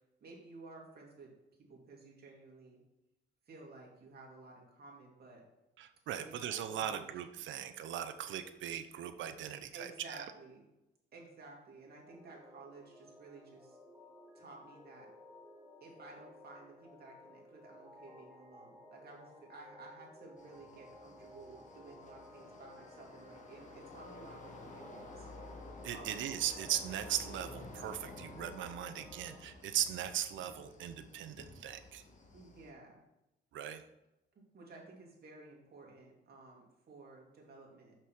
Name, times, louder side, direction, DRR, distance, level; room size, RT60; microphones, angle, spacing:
voice 1, 0.2-1.3 1.6-2.8 3.5-5.4 6.1-7.1 9.7-10.6 11.1-13.8 14.3-15.1 15.8-25.3 25.9-26.4 30.3-30.5 32.3-33.0 34.5-38.0, right 3 dB, 50° right, -2 dB, 2.5 m, -54 dB
voice 2, 5.8-10.2 25.8-32.0 33.5-33.8, right 10 dB, 70° right, 10 dB, 0.7 m, -39 dB
sound 1, 12.0-29.4, left 1 dB, 5° right, 1.8 m, -56 dB
sound 2, 20.4-32.7, left 2 dB, 40° left, 1.5 m, -52 dB
6.0 x 6.0 x 4.7 m, 0.93 s
cardioid pair, 90°, 20 cm